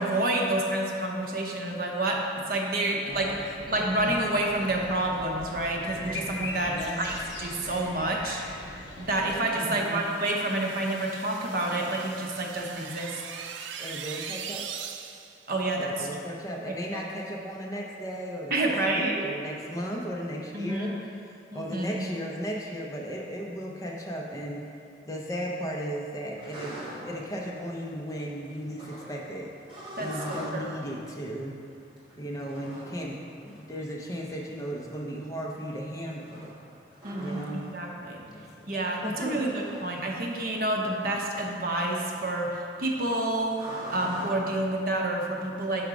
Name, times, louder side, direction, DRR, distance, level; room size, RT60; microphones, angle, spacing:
voice 1, 0.0-8.4 9.0-13.2 15.5-16.1 16.7-17.0 18.5-19.3 20.5-21.0 21.5-22.0 30.0-30.7 37.0-38.2 38.7-45.8, right 1 dB, 50° right, 0 dB, 0.8 m, -29 dB
voice 2, 3.0-3.4 3.8-4.1 6.7-7.1 9.5-10.0 13.8-14.7 15.8-20.9 21.5-24.7 25.1-26.8 27.1-29.5 30.0-31.6 32.2-36.5 37.2-37.7 38.3-38.7 39.0-39.7, equal, 20° left, -2 dB, 0.6 m, -36 dB
sound 1, 3.1-9.4, left 2 dB, 80° left, 0.9 m, -40 dB
sound 2, 9.5-15.5, right 7 dB, 90° right, 0.4 m, -41 dB
sound 3, 26.4-44.6, equal, 30° right, 1.3 m, -45 dB
6.0 x 4.7 x 5.0 m, 2.5 s
head